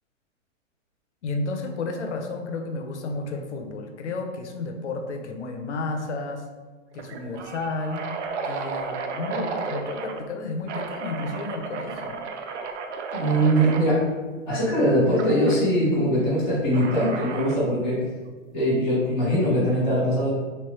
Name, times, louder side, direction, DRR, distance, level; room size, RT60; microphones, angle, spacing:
voice 1, 1.2-6.4 6.9-8.1 8.4-12.2, left 3 dB, 60° left, 4 dB, 0.6 m, -32 dB
sound 1, 5.7-6.0 6.3-6.4 6.9-10.2 10.7-13.9 15.2-15.6 16.7-17.7, right 4 dB, 65° right, 0.5 m, -33 dB
voice 2, 13.1-14.1 14.5-18.0 18.5-20.3, equal, 10° right, -18 dB, 0.4 m, -21 dB
3.1 x 3.1 x 3.2 m, 1.3 s
hypercardioid pair, 165°, 39 cm